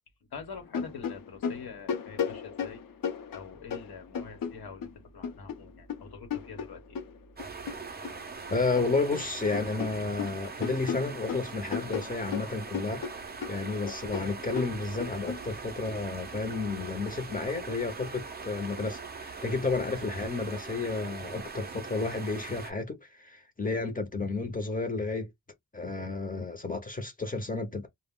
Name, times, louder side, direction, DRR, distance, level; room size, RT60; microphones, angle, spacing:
voice 1, 0.3-2.8 3.3-7.0, left 5 dB, 85° left, 0.9 m, -45 dB
sound 1, 0.6-4.9 5.2-8.2 8.5-9.3 9.5-15.4, left 7 dB, 65° left, 0.6 m, -36 dB
sound 2, 7.4-22.7, right 4 dB, 30° right, 0.4 m, -41 dB
voice 2, 8.5-13.0 13.5-25.3 25.7-27.9, left 3 dB, 25° left, 0.6 m, -32 dB
2.3 x 2.1 x 3.5 m
wide cardioid pair, 175°, 36 cm